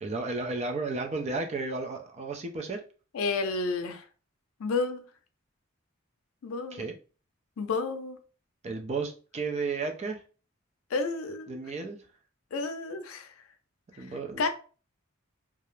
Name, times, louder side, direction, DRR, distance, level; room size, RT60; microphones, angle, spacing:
voice 1, 0.0-2.8 6.7-6.9 8.6-10.2 11.5-12.0 14.0-14.5, right 3 dB, 30° right, 0.4 m, -33 dB
voice 2, 3.1-4.0 4.6-5.1 6.4-6.9 7.6-8.2 10.9-11.6 12.5-13.3 14.4-14.5, left 3 dB, 85° left, 0.4 m, -30 dB
2.3 x 2.0 x 3.0 m
head